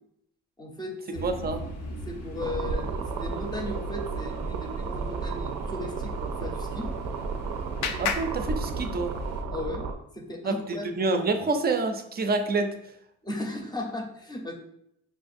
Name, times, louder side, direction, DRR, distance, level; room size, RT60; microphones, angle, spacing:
voice 1, 0.6-1.3 2.1-6.9 9.5-9.9 10.1-10.9 13.2-14.5, left 1 dB, 15° left, 2 dB, 0.7 m, -36 dB
sound 1, 1.1-9.4, equal, 80° left, 1.0 m, -41 dB
voice 2, 1.2-1.6 7.8-9.1 10.4-12.7, right 3 dB, 30° right, 7 dB, 0.5 m, -27 dB
sound 2, 2.4-10.0, right 4 dB, 80° right, 0.5 m, -33 dB
Clapping, 6.7-9.3, left 6 dB, 65° left, 0.5 m, -36 dB
5.7 x 2.4 x 2.5 m, 0.77 s
cardioid pair, 90°, 30 cm